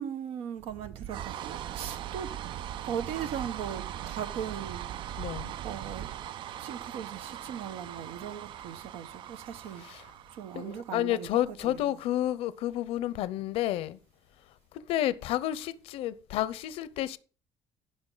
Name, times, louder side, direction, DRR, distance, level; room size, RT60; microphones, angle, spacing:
voice 1, 0.0-2.3 2.8-4.9 5.6-6.1 6.6-9.9 10.3-12.0, right 8 dB, 90° right, 1.2 m, -38 dB
sound 1, 0.6-11.1, right 11 dB, 55° right, 0.4 m, -40 dB
voice 2, 5.2-5.5 9.8-10.0 10.5-14.0 14.9-17.2, left 13 dB, 80° left, 0.7 m, -30 dB
15.5 x 5.6 x 4.0 m
cardioid pair, 140°, 10 cm